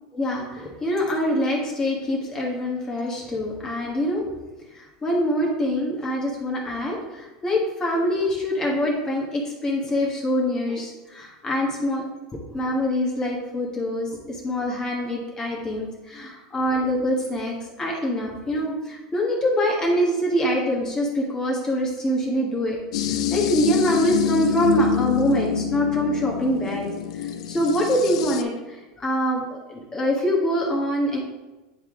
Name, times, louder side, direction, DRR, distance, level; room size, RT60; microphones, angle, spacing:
voice 1, 0.1-4.4 4.7-12.1 12.5-22.8 23.1-26.9 27.2-31.2, equal, 20° left, -2 dB, 1.4 m, -24 dB
sound 1, 22.9-28.4, left 9 dB, 85° left, 0.4 m, -26 dB
9.6 x 3.3 x 3.7 m, 1.1 s
supercardioid pair, 120°, 3 cm